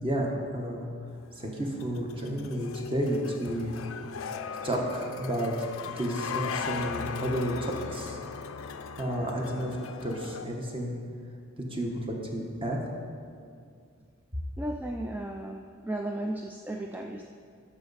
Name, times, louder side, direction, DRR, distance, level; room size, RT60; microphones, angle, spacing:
voice 1, 0.0-0.9 1.3-3.8 4.6-5.5 5.9-8.2 9.0-9.8 10.0-11.0 11.6-12.8, right 1 dB, 25° right, 0 dB, 1.2 m, -31 dB
sound 1, 1.2-10.5, left 6 dB, 80° left, 0.5 m, -38 dB
voice 2, 14.6-17.2, right 1 dB, 10° right, 2 dB, 0.3 m, -35 dB
13.0 x 5.8 x 4.0 m, 2.2 s
head